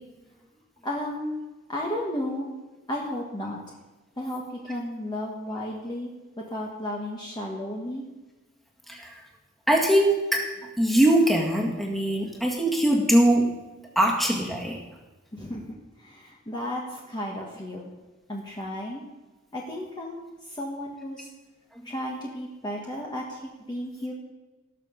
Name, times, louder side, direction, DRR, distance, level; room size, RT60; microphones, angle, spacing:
voice 1, 0.8-1.4 1.7-2.5 2.9-3.6 4.2-6.1 6.4-8.0 15.3-15.7 16.0-17.9 18.3-19.0 19.5-21.3 21.8-24.1, left 1 dB, 20° left, -2 dB, 1.4 m, -33 dB
voice 2, 9.7-10.4 10.8-13.5 14.0-14.8, right 1 dB, ahead, -1 dB, 1.9 m, -21 dB
18.5 x 6.7 x 5.2 m, 1.2 s
head